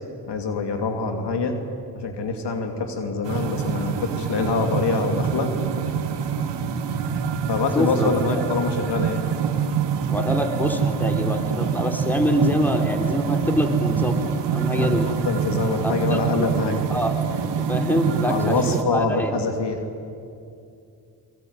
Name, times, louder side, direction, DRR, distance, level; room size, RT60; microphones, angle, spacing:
voice 1, 0.3-1.6 1.9-5.5 7.5-9.2 14.7-16.8 18.2-19.8, left 3 dB, 75° left, 5 dB, 2.7 m, -25 dB
sound 1, 3.2-18.8, right 7 dB, 75° right, 2.0 m, -25 dB
voice 2, 7.7-8.5 10.1-14.2 14.5-15.1 15.8-17.2 17.7-19.3, equal, 5° left, 3 dB, 4.3 m, -25 dB
24.0 x 22.5 x 9.6 m, 2.6 s
cardioid pair, 60°, 42 cm